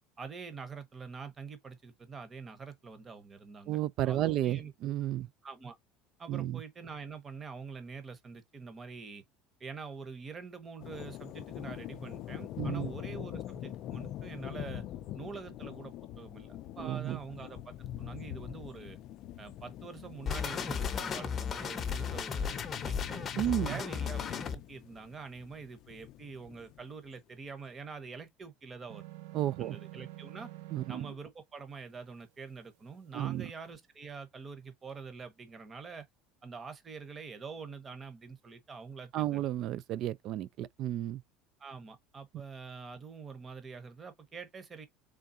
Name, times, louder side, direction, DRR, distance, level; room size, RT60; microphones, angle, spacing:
voice 1, 0.2-3.8 4.0-4.7 5.0-5.1 5.4-5.8 6.2-9.2 9.6-14.9 15.1-19.0 19.4-23.3 23.7-29.0 29.6-30.5 30.9-36.0 36.4-39.4 41.6-44.9, right 5 dB, 25° right, 0.9 m, -45 dB
voice 2, 3.7-5.3 6.3-6.6 12.6-12.9 16.8-17.2 23.4-23.8 29.3-29.8 30.7-31.1 33.1-33.5 39.1-41.2, right 13 dB, 50° right, 0.3 m, -32 dB
sound 1, 10.8-26.9, left 12 dB, 50° left, 0.4 m, -44 dB
sound 2, 20.3-24.6, left 7 dB, 30° left, 0.7 m, -35 dB
sound 3, 28.9-31.2, right 16 dB, 90° right, 1.0 m, -47 dB
3.8 x 3.5 x 2.6 m
cardioid pair, 140°, 0 cm